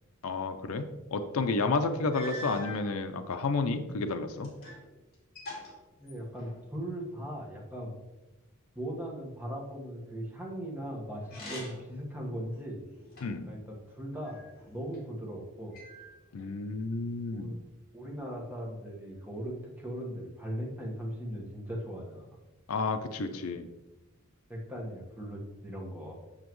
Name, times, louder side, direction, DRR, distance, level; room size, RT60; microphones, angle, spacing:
voice 1, 0.2-4.5 13.2-13.5 16.3-17.6 22.7-23.7, left 3 dB, 70° left, 8 dB, 0.5 m, -31 dB
sound 1, 2.1-2.9 3.6-4.9 5.1-6.7 11.2-12.0 12.5-13.5 14.2-15.0 15.7-16.5, left 1 dB, 45° left, 2.4 m, -45 dB
voice 2, 6.0-8.0 8.7-12.8 13.5-14.4 14.7-15.8 17.3-17.6 17.9-22.3 24.5-26.2, equal, 10° right, -2 dB, 1.4 m, -39 dB
7.3 x 6.8 x 3.1 m, 1.1 s
head